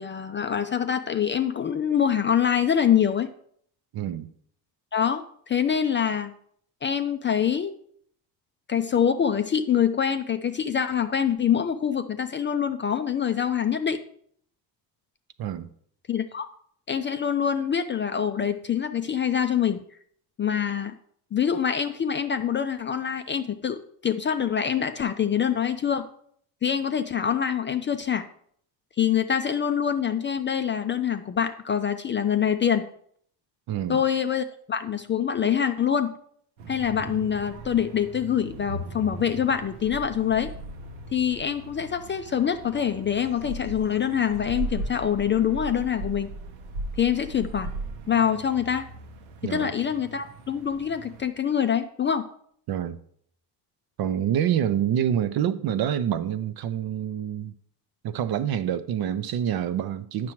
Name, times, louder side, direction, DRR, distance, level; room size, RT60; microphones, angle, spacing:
voice 1, 0.0-3.3 4.9-6.3 6.8-7.7 8.7-14.0 16.1-16.5 16.9-19.8 20.4-20.9 21.3-26.0 26.6-28.3 29.0-32.9 33.9-36.1 36.7-40.5 41.1-46.3 47.0-47.7 48.1-48.8 49.4-52.3, left 8 dB, 25° left, 0.3 m, -25 dB
voice 2, 3.9-4.3 15.4-15.7 33.7-34.0 49.4-49.7 52.7-53.0 54.0-57.5 58.0-60.3, right 10 dB, 50° right, 0.6 m, -27 dB
sound 1, 36.6-51.3, right 2 dB, 80° right, 0.9 m, -38 dB
8.4 x 5.9 x 3.0 m
supercardioid pair, 65°, 47 cm